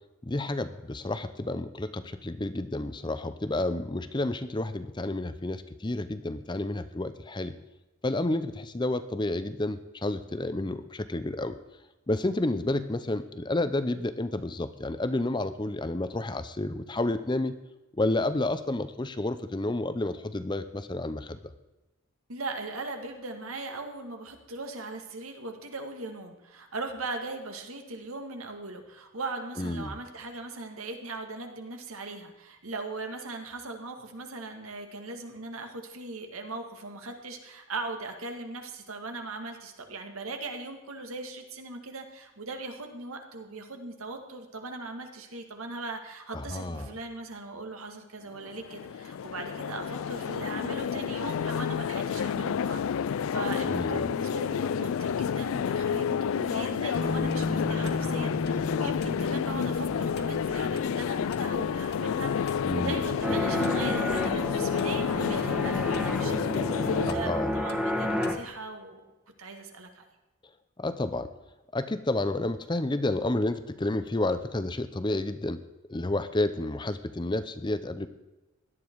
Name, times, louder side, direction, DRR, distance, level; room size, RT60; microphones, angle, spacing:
voice 1, 0.2-7.5 8.0-11.6 12.1-17.6 18.0-21.4 29.6-29.9 46.3-46.9 53.7-54.1 62.6-63.0 67.1-67.6 70.8-71.3 71.7-75.6 75.9-78.1, left 2 dB, 20° left, 12 dB, 0.6 m, -30 dB
voice 2, 22.3-66.4 66.9-69.0 69.4-70.0, right 3 dB, 80° right, 4 dB, 2.1 m, -39 dB
sound 1, 48.3-67.1, left 7 dB, 70° left, 0.3 m, -30 dB
sound 2, 56.9-68.4, left 2 dB, 50° left, 1.3 m, -38 dB
sound 3, 63.2-68.4, left 1 dB, 5° right, 1.3 m, -30 dB
17.5 x 11.5 x 4.7 m, 1.1 s
head